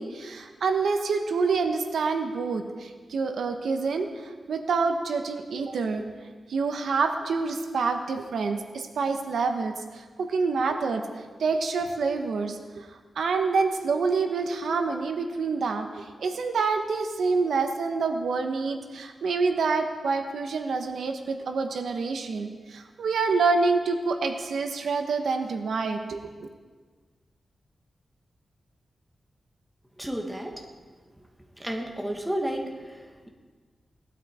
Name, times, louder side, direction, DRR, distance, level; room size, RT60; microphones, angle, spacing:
voice 1, 0.0-6.0 6.5-11.0 11.4-26.5, right 4 dB, 85° right, 5 dB, 1.2 m, -27 dB
voice 2, 30.0-30.5 31.6-32.7, right 1 dB, 5° right, 1 dB, 1.4 m, -30 dB
18.5 x 12.5 x 4.4 m, 1.5 s
wide cardioid pair, 175°, 0 cm